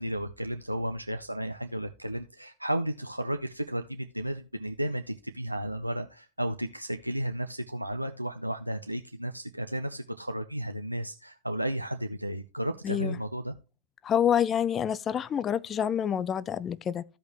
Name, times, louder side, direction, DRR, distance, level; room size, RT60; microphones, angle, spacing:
voice 1, 0.0-13.6, right 1 dB, 90° right, 0.5 m, -33 dB
voice 2, 12.8-13.2 14.0-17.0, left 9 dB, 25° left, 0.4 m, -27 dB
14.5 x 5.3 x 3.0 m
figure-of-eight pair, 90°, 0 cm